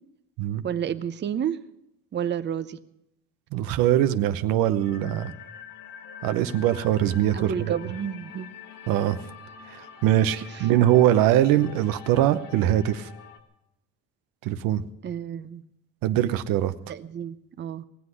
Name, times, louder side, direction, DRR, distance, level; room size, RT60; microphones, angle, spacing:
voice 1, 0.6-1.6 2.1-2.8 7.3-8.5 10.5-10.7 15.0-15.6 16.9-17.8, right 9 dB, 35° right, 12 dB, 0.7 m, -30 dB
voice 2, 3.5-5.3 6.2-7.5 8.9-9.2 9.7-13.1 14.4-14.8 16.0-16.7, right 12 dB, 85° right, 11 dB, 0.9 m, -22 dB
sound 1, 4.8-13.4, left 7 dB, 85° left, 1.6 m, -45 dB
18.5 x 7.8 x 9.6 m, 0.82 s
cardioid pair, 110°, 33 cm